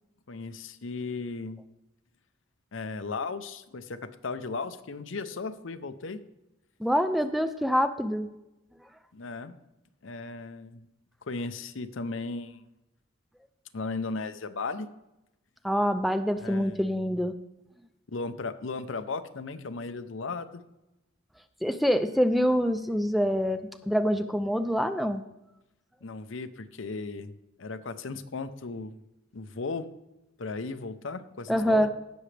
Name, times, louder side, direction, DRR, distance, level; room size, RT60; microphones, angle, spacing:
voice 1, 0.3-1.6 2.7-6.2 9.1-9.6 10.0-10.9 11.2-12.6 13.7-14.9 16.4-17.2 18.1-20.6 26.0-27.3 27.6-29.0 29.3-29.9 30.4-31.9, left 3 dB, 70° left, 11 dB, 0.7 m, -36 dB
voice 2, 6.8-8.3 15.6-17.3 21.6-23.6 23.9-25.2 31.5-31.9, equal, ahead, 9 dB, 0.4 m, -25 dB
17.5 x 6.2 x 3.3 m, 0.94 s
head